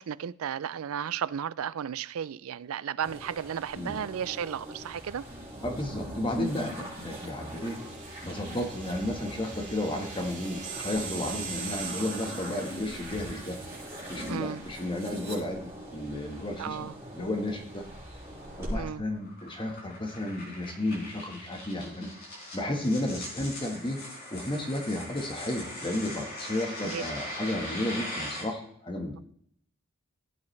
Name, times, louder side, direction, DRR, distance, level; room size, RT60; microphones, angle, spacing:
voice 1, 0.0-5.2 14.3-14.6 16.6-16.9 18.7-19.0 26.8-27.0, right 8 dB, 75° right, 0.4 m, -34 dB
sound 1, 3.0-18.8, right 1 dB, 15° right, 5.5 m, -41 dB
voice 2, 5.6-7.8 8.2-13.6 14.1-16.9 17.1-17.8 18.6-22.1 22.5-24.0 24.3-29.2, left 1 dB, 20° left, 1.4 m, -33 dB
sound 2, 7.5-13.4, right 6 dB, 30° right, 3.0 m, -41 dB
sound 3, 17.7-28.4, left 1 dB, 45° left, 4.6 m, -41 dB
15.5 x 8.6 x 3.3 m
head